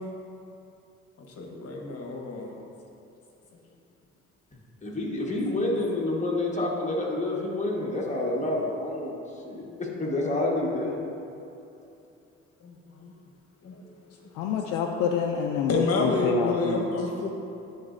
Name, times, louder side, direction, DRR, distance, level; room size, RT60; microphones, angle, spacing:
voice 1, 1.2-2.5 12.6-13.1 13.6-13.8 14.5-14.6 15.7-17.3, left 2 dB, 55° left, 1 dB, 1.2 m, -29 dB
voice 2, 4.8-9.2 9.4-11.0, left 2 dB, 25° left, -3 dB, 1.4 m, -28 dB
voice 3, 14.4-16.9, left 7 dB, 90° left, 2 dB, 0.5 m, -27 dB
10.5 x 4.0 x 2.6 m, 2.8 s
supercardioid pair, 65°, 29 cm